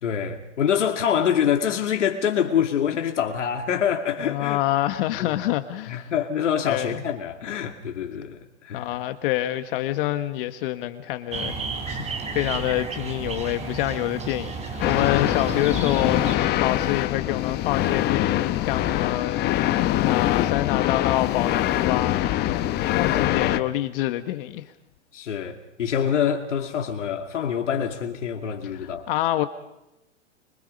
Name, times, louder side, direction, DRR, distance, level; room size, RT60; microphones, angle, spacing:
voice 1, 0.0-4.6 5.2-5.4 5.9-9.0 23.1-23.6 25.1-29.1, left 8 dB, 80° left, 2.5 m, -26 dB
voice 2, 4.2-6.1 6.7-7.0 8.7-11.6 11.9-24.6 28.7-29.5, left 14 dB, 50° left, 1.3 m, -27 dB
sound 1, 11.3-16.4, right 4 dB, 20° right, 5.5 m, -32 dB
sound 2, 14.8-23.6, left 14 dB, 30° left, 1.0 m, -23 dB
27.0 x 24.0 x 5.3 m
hypercardioid pair, 130°, 36 cm